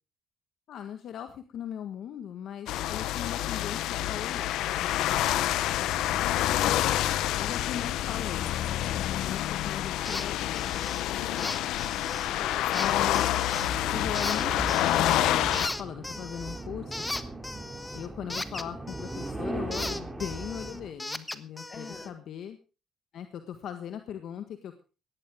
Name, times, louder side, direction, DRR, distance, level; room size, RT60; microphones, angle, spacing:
voice 1, 0.7-6.2 6.6-10.8 12.7-13.3 13.9-15.1 15.4-17.0 17.9-22.6 23.1-24.8, left 9 dB, 70° left, 8 dB, 1.6 m, -39 dB
sound 1, 2.7-15.7, left 13 dB, 90° left, 0.9 m, -28 dB
sound 2, 10.0-10.3 10.5-11.0 11.4-12.3 12.7-13.7 14.1-15.3 15.5-19.3 19.7-22.1, left 2 dB, 15° left, 1.4 m, -37 dB
voice 2, 11.1-11.6 12.2-12.9 21.7-22.2, left 4 dB, 45° left, 5 dB, 4.3 m, -45 dB
sound 3, 13.5-20.9, right 2 dB, 15° right, 3.3 m, -39 dB
18.5 x 14.0 x 3.7 m, 0.33 s
cardioid pair, 100°, 0 cm